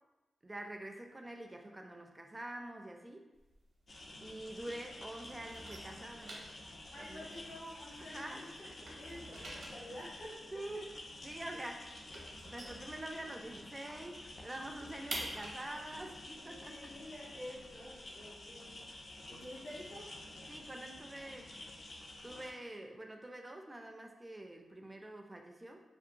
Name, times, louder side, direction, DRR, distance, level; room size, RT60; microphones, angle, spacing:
voice 1, 0.4-3.3 4.2-6.4 6.9-7.3 8.0-8.8 9.1-9.2 10.5-10.9 11.2-11.9 12.4-16.9 20.5-21.5 22.2-25.8, right 1 dB, 20° right, 3 dB, 0.3 m, -46 dB
sound 1, 3.3-4.8 5.1-8.3 8.6-13.6 13.9-14.0 14.3-18.1, right 1 dB, 70° right, 0.6 m, -48 dB
sound 2, 3.9-22.5, left 2 dB, 50° left, 0.4 m, -50 dB
voice 2, 6.9-8.7 9.0-10.8 11.5-11.6 16.4-18.8 19.3-20.1, left 1 dB, 75° left, -7 dB, 0.8 m, -49 dB
2.7 x 2.1 x 2.5 m, 1.1 s
cardioid pair, 70°, 0 cm